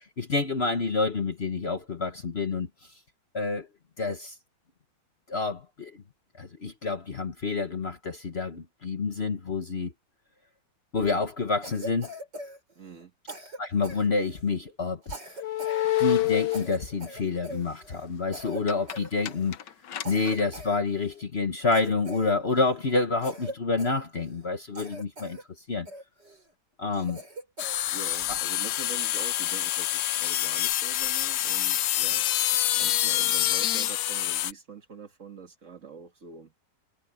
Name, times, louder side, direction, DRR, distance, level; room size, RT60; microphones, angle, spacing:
voice 1, 0.0-2.7 3.3-3.7 4.0-4.3 5.3-6.0 6.4-9.9 10.9-12.1 13.6-15.0 16.0-19.6 20.0-25.4 25.7-25.9 26.8-27.2, left 4 dB, 40° left, 1.4 m, -28 dB
Cough, 11.6-13.0 13.3-14.5 15.0-15.8 16.1-16.2 16.5-18.1 18.3-18.6 18.9-19.5 20.0-21.2 21.7-22.8 23.2-24.5 24.7-25.4 25.9-26.4 26.9-27.8, right 1 dB, 75° right, 7.4 m, -42 dB
voice 2, 12.8-13.1 27.9-32.3 32.7-36.5, right 5 dB, 45° right, 2.3 m, -44 dB
sound 1, 15.4-16.8 18.7-19.0 19.3-20.4, left 16 dB, 85° left, 1.6 m, -27 dB
sound 2, 27.6-34.5, left 13 dB, 70° left, 0.9 m, -26 dB
omnidirectional pair, 1.9 m